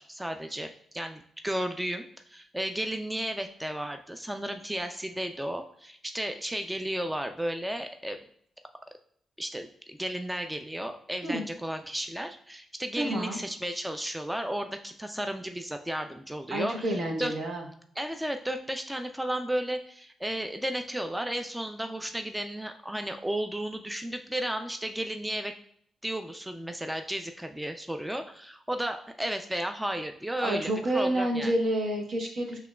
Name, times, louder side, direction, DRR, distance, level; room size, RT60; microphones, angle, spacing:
voice 1, 0.0-8.2 9.4-17.3 18.0-25.5 26.0-31.5, right 1 dB, 5° right, 6 dB, 0.3 m, -34 dB
voice 2, 13.0-13.4 16.5-17.6 30.4-32.7, right 1 dB, 70° right, 0 dB, 1.1 m, -29 dB
6.0 x 2.9 x 2.2 m, 0.65 s
cardioid pair, 80°, 0 cm